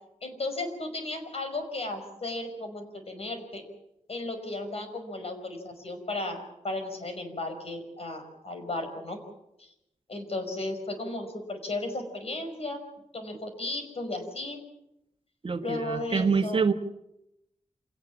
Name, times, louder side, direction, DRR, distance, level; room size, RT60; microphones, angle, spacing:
voice 1, 0.2-3.6 4.1-9.2 9.6-9.7 10.1-12.8 13.1-14.6 15.6-16.6, left 2 dB, 55° left, 6 dB, 5.4 m, -35 dB
voice 2, 15.4-16.7, right 5 dB, 45° right, 7 dB, 1.4 m, -26 dB
26.5 x 18.5 x 7.3 m, 0.85 s
wide cardioid pair, 125°, 12 cm